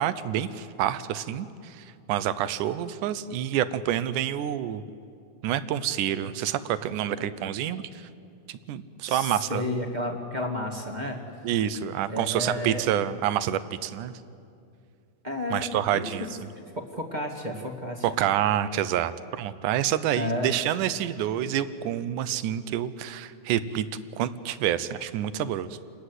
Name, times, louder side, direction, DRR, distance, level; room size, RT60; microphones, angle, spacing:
voice 1, 0.0-4.8 5.4-8.1 8.5-9.6 11.4-14.1 15.5-16.3 18.0-19.1 19.4-23.9 24.2-25.8, right 11 dB, 75° right, 14 dB, 1.9 m, -28 dB
voice 2, 9.1-11.2 12.1-12.8 15.2-15.6 15.9-16.1 16.7-18.1 20.1-20.5, left 1 dB, 30° right, 2 dB, 0.8 m, -31 dB
29.0 x 20.5 x 8.1 m, 2.5 s
omnidirectional pair, 4.4 m